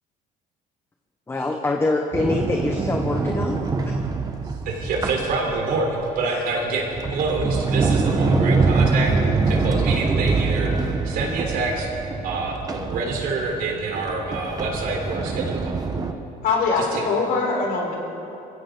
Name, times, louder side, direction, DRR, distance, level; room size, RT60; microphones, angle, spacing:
voice 1, 1.3-3.6 3.8-4.0 6.2-6.4, left 2 dB, 15° left, 2 dB, 1.0 m, -25 dB
Sliding door, 2.1-5.9 6.6-16.1, right 4 dB, 25° right, 1.0 m, -24 dB
voice 2, 4.7-5.9 6.2-11.9 12.2-15.7 16.8-17.0, right 3 dB, 65° right, 0 dB, 3.7 m, -27 dB
voice 3, 16.4-17.9, left 4 dB, 75° left, -1 dB, 4.3 m, -22 dB
23.0 x 15.5 x 3.9 m, 2.8 s
cardioid pair, 135°, 16 cm